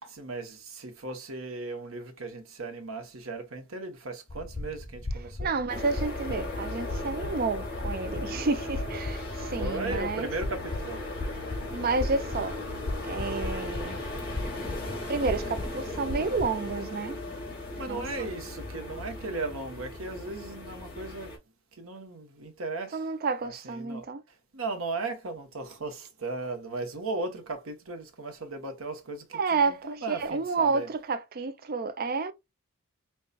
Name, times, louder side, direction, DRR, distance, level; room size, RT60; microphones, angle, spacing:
voice 1, 0.0-5.5 9.6-11.0 17.8-21.3 21.8-23.0 23.6-24.0 24.5-29.6 29.8-30.9, right 3 dB, 70° right, 1.0 m, -36 dB
sound 1, 4.3-16.8, left 2 dB, 25° left, 0.5 m, -37 dB
voice 2, 5.4-10.3 11.7-12.6 13.0-14.0 15.1-17.2 17.8-18.3 22.9-24.2 29.3-32.3, right 4 dB, 45° right, 0.5 m, -30 dB
sound 2, 5.7-21.4, left 2 dB, 50° left, 1.9 m, -37 dB
5.3 x 2.3 x 2.3 m
head